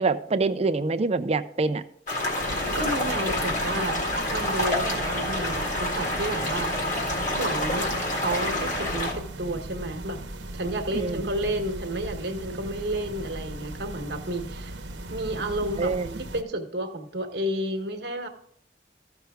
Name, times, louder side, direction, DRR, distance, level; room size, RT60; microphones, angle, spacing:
voice 1, 0.0-1.8 10.9-11.3 15.8-16.1, right 3 dB, 35° right, 12 dB, 0.4 m, -25 dB
sound 1, 2.1-9.1, left 1 dB, 45° left, 1.8 m, -28 dB
sound 2, 2.4-16.4, right 1 dB, 85° right, 1.0 m, -38 dB
voice 2, 2.7-4.0 4.3-6.7 7.3-10.2 10.5-14.8 15.1-15.9 16.3-18.3, right 1 dB, 65° right, 5 dB, 1.1 m, -31 dB
14.0 x 5.7 x 3.5 m, 0.67 s
head